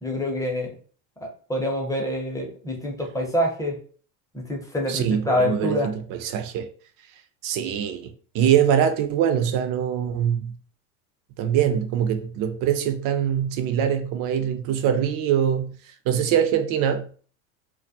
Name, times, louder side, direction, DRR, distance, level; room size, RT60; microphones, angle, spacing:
voice 1, 0.0-0.7 1.2-3.8 4.3-5.9, left 1 dB, 10° left, 0.6 m, -26 dB
voice 2, 4.9-6.7 7.4-10.6 11.4-15.8 16.1-17.1, right 9 dB, 50° right, 0.5 m, -23 dB
2.3 x 2.1 x 2.6 m
hypercardioid pair, 85°, 43 cm